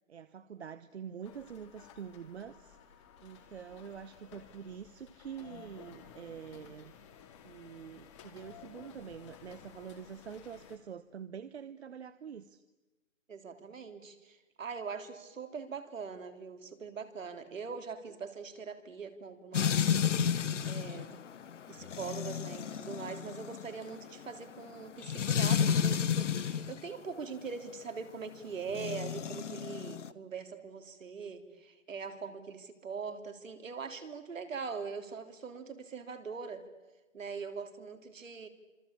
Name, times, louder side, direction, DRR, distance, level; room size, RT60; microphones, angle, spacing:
voice 1, 0.1-2.8 3.2-6.9 7.4-12.6, right 7 dB, 55° right, 14 dB, 1.0 m, -46 dB
sound 1, 1.2-10.8, left 7 dB, 20° left, 2.2 m, -55 dB
voice 2, 13.3-20.0 20.6-21.2 21.7-36.7 37.1-38.5, right 5 dB, 75° right, 8 dB, 3.4 m, -42 dB
sound 2, 19.5-26.8 28.7-30.1, left 8 dB, 65° left, 1.1 m, -31 dB
26.5 x 25.0 x 8.6 m, 1.1 s
hypercardioid pair, 165°, 39 cm